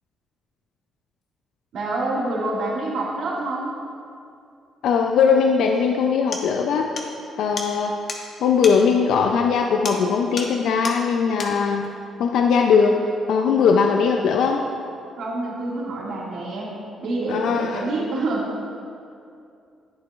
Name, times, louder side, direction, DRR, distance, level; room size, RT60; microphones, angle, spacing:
voice 1, 1.7-3.7 15.2-16.7 17.0-18.7, right 2 dB, 75° right, -5 dB, 2.0 m, -27 dB
voice 2, 4.8-6.9 7.4-7.9 8.4-11.9 12.2-13.0 13.3-14.6 17.3-17.8, left 6 dB, 80° left, 2 dB, 0.4 m, -19 dB
sound 1, 5.7-5.8 6.3-6.5 7.0-7.1 7.6-7.7 8.1-8.2 8.6-8.8 9.8-10.1 10.4-10.6 10.8-11.0 11.4-11.6, left 3 dB, 50° left, 1.1 m, -31 dB
10.5 x 8.7 x 2.4 m, 2.5 s
cardioid pair, 90°, 0 cm